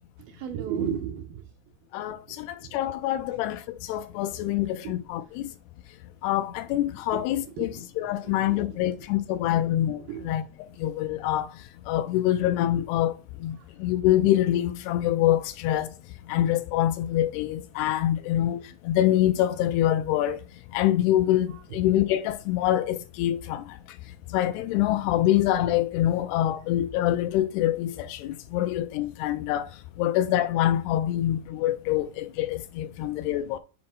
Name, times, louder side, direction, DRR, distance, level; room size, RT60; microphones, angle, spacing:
voice 1, 0.2-1.5 2.3-2.8 4.6-5.0 7.1-7.9 8.2-9.4 10.1-10.3 13.6-13.7 18.2-18.5 21.5-21.6 23.5-23.6, right 8 dB, 80° right, 2.2 m, -36 dB
voice 2, 1.9-5.5 6.2-7.7 8.0-10.4 10.8-15.9 16.3-20.4 20.7-23.8 24.3-29.7 30.0-33.6, left 13 dB, 80° left, 2.4 m, -25 dB
7.7 x 5.2 x 4.3 m
omnidirectional pair, 4.8 m